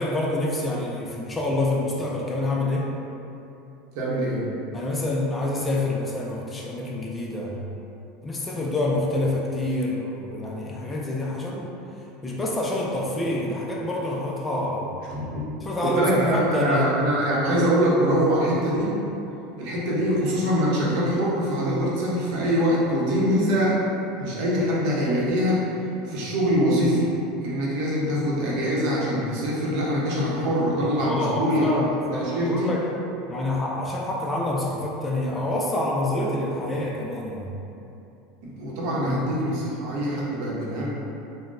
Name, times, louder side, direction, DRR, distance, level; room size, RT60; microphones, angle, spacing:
voice 1, 0.0-2.9 4.7-7.6 8.2-11.7 12.2-14.9 15.6-16.9 31.0-32.8 33.3-37.5 39.0-39.3, left 1 dB, 15° left, -3 dB, 0.3 m, -27 dB
voice 2, 3.9-4.5 15.1-15.4 15.8-19.1 19.6-23.8 24.2-25.7 26.0-27.2 27.4-32.7 38.4-40.9, equal, 60° right, -6 dB, 0.8 m, -23 dB
3.8 x 2.1 x 2.5 m, 2.8 s
supercardioid pair, 135°, 0 cm